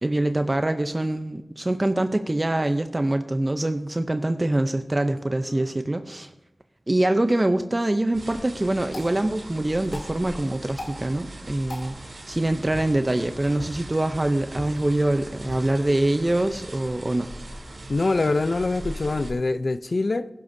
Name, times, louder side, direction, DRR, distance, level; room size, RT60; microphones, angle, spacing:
voice 1, 0.0-6.3 6.9-17.3, right 1 dB, 30° right, 0.6 m, -24 dB
sound 1, 7.8-17.8, left 1 dB, 85° left, 3.3 m, -44 dB
sound 2, 8.1-19.3, right 1 dB, 65° right, 3.0 m, -40 dB
voice 2, 17.9-20.3, left 3 dB, 55° left, 0.5 m, -24 dB
20.5 x 11.0 x 2.7 m
wide cardioid pair, 70°, 0 cm